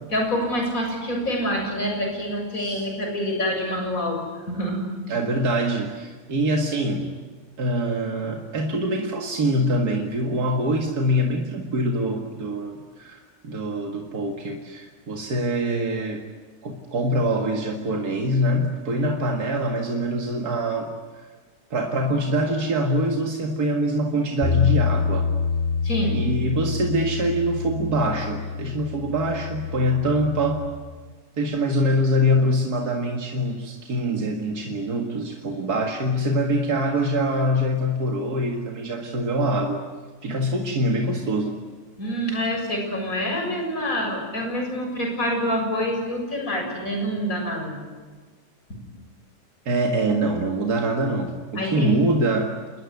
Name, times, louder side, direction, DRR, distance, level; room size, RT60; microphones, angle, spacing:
voice 1, 0.1-4.2 4.5-4.8 25.8-26.2 42.0-47.8 51.6-52.0, equal, 65° left, 2 dB, 7.6 m, -26 dB
voice 2, 5.1-7.1 7.6-13.2 13.4-16.2 16.6-20.9 21.7-25.3 26.1-30.7 31.4-39.8 40.2-41.6 49.7-52.5, equal, 90° right, 2 dB, 2.5 m, -24 dB
Bass guitar, 24.4-30.7, left 6 dB, 35° left, 4.0 m, -26 dB
28.0 x 21.0 x 9.6 m, 1.5 s
omnidirectional pair, 1.6 m